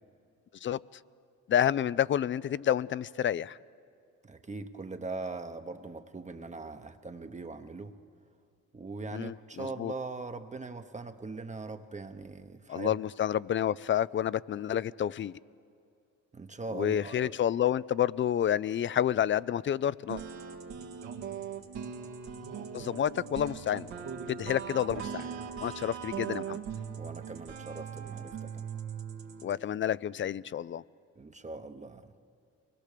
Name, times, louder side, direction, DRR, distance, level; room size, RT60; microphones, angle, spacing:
voice 1, 1.5-3.6 9.1-9.9 12.7-15.4 16.7-20.2 22.7-23.9 24.3-25.3 25.6-26.6 29.4-30.8, left 10 dB, 40° left, 20 dB, 0.4 m, -29 dB
voice 2, 4.2-7.9 8.7-12.9 16.3-17.3 27.0-28.7 31.2-32.1, right 3 dB, 25° right, 7 dB, 0.9 m, -41 dB
sound 1, 20.1-29.5, right 7 dB, 90° right, 1.9 m, -40 dB
24.0 x 20.0 x 6.8 m, 2.4 s
cardioid pair, 90°, 30 cm